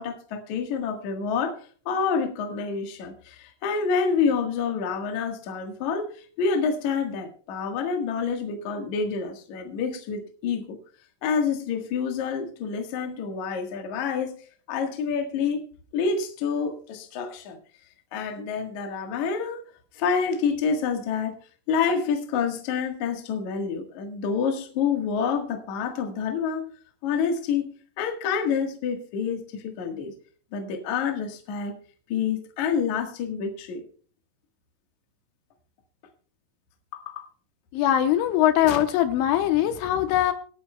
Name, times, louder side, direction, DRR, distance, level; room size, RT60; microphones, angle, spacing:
voice 1, 0.0-1.6 1.9-10.8 11.2-14.4 14.7-15.6 15.9-17.6 18.1-19.6 19.9-21.4 21.7-26.7 27.0-30.1 30.5-31.8 32.1-33.8 36.9-37.3, left 6 dB, 65° left, 4 dB, 1.9 m, -28 dB
voice 2, 37.7-40.3, left 11 dB, 80° left, 7 dB, 3.2 m, -21 dB
26.0 x 8.7 x 2.3 m, 0.43 s
omnidirectional pair, 5.8 m